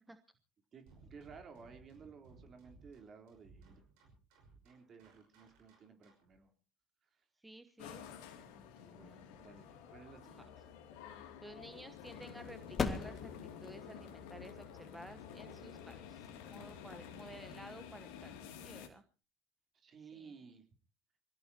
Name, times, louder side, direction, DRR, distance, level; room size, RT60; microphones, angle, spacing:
voice 1, 0.7-3.8 4.6-6.5 7.2-7.3 8.1-10.7 19.7-20.6, right 5 dB, 40° right, 5 dB, 3.7 m, -56 dB
sound 1, 0.9-6.4, right 3 dB, 65° right, 5.8 m, -61 dB
voice 2, 7.4-8.0 8.8-9.4 11.4-19.0 20.1-20.3, right 1 dB, 10° right, 9 dB, 1.1 m, -54 dB
sound 2, 7.8-18.9, left 8 dB, 70° left, 2.6 m, -51 dB
sound 3, 10.6-17.4, left 5 dB, 30° left, 2.0 m, -44 dB
25.5 x 17.0 x 2.9 m, 0.34 s
hypercardioid pair, 70°, 0 cm